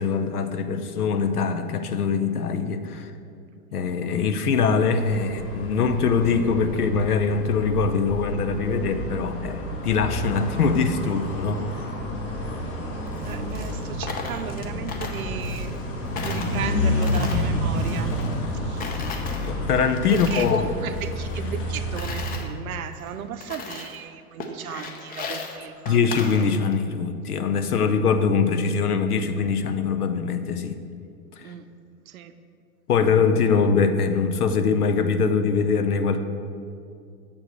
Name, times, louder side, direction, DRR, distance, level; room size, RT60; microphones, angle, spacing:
voice 1, 0.0-3.1 3.7-11.6 19.4-20.7 25.9-30.8 31.4-31.5 32.9-36.2, left 5 dB, 75° left, 9 dB, 0.7 m, -23 dB
sound 1, 5.0-22.4, left 1 dB, 45° left, 1.5 m, -30 dB
Coin (dropping), 13.1-15.9 16.2-18.5 18.8-20.6 20.9-22.5 23.0-23.1 23.4-24.0 24.4-26.8, left 4 dB, 20° left, 0.6 m, -37 dB
voice 2, 13.2-15.7 16.2-18.2 18.5-19.2 20.1-26.0 31.4-31.7 32.1-32.3, right 8 dB, 65° right, 10 dB, 0.7 m, -36 dB
7.0 x 4.6 x 6.6 m, 2.4 s
figure-of-eight pair, 100°, 45 cm